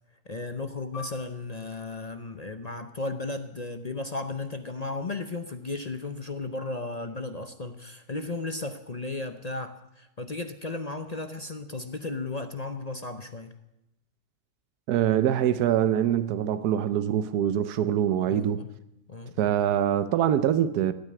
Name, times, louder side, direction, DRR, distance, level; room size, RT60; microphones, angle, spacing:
voice 1, 0.3-13.5 18.3-18.7 19.1-19.5, left 3 dB, 35° left, 0.6 m, -35 dB
Piano, 0.9-6.0 6.3-6.5 7.2-7.6, left 5 dB, 70° left, 3.0 m, -51 dB
voice 2, 14.9-18.6 19.4-20.9, right 10 dB, 85° right, 1.3 m, -24 dB
16.0 x 8.9 x 9.5 m
omnidirectional pair, 1.6 m